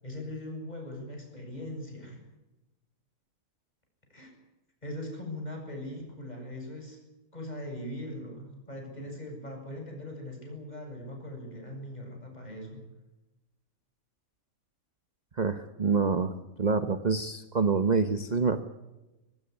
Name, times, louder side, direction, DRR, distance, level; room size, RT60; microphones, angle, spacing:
voice 1, 0.0-2.2 4.1-4.3 4.8-7.0 7.3-12.8, left 1 dB, 30° left, 2 dB, 8.2 m, -40 dB
voice 2, 15.3-16.3 16.6-18.6, right 5 dB, 35° right, 9 dB, 1.1 m, -26 dB
22.0 x 20.5 x 9.8 m, 1.0 s
omnidirectional pair, 1.5 m